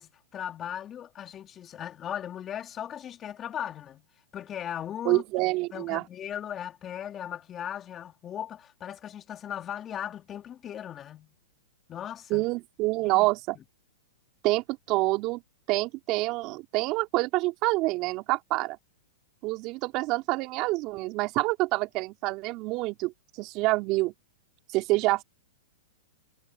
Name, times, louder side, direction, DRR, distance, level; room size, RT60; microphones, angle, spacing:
voice 1, 0.0-4.1 4.3-5.2 5.7-11.3 11.9-12.5 13.0-13.3 13.5-13.6, left 10 dB, 25° left, 3.2 m, -38 dB
voice 2, 5.0-6.0 12.3-13.6 14.4-15.4 15.7-18.8 19.4-23.1 23.4-24.1 24.7-25.2, right 21 dB, 40° right, 3.4 m, -27 dB
hypercardioid pair, 125°, 0 cm